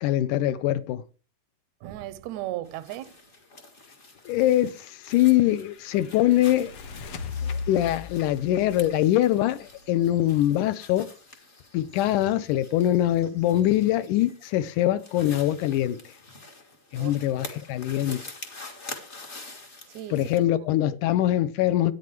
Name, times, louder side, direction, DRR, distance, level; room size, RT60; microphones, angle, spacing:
voice 1, 0.0-1.0 4.3-6.7 7.4-11.1 11.7-16.1 16.9-18.2 20.1-21.9, left 13 dB, 80° left, 2.0 m, -23 dB
voice 2, 1.8-3.2 16.9-17.1 19.9-20.4, right 14 dB, 80° right, 1.7 m, -36 dB
sound 1, 2.6-20.4, left 3 dB, 35° left, 1.1 m, -46 dB
sound 2, 4.6-10.3, left 5 dB, 60° left, 1.5 m, -38 dB
13.0 x 9.2 x 3.2 m
omnidirectional pair, 3.9 m